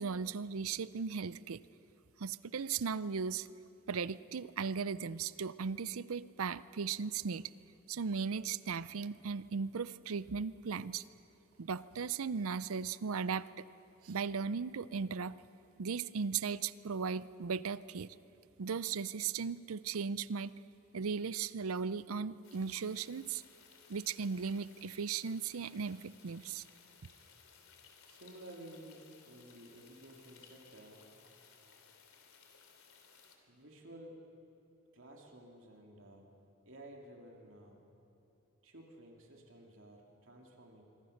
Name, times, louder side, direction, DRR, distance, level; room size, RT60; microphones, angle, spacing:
voice 1, 0.0-1.6 2.2-3.5 3.9-7.5 7.9-11.0 11.6-13.7 14.0-15.4 15.8-18.1 18.6-20.5 20.9-23.4 23.9-26.6, right 5 dB, 80° right, 17 dB, 0.6 m, -37 dB
sound 1, 22.4-33.4, left 6 dB, 75° left, 3.1 m, -61 dB
voice 2, 28.1-31.1 33.5-34.2 34.9-36.2 36.6-37.8 38.6-40.8, right 1 dB, 60° right, 1 dB, 2.6 m, -53 dB
26.0 x 24.0 x 6.6 m, 2.9 s
head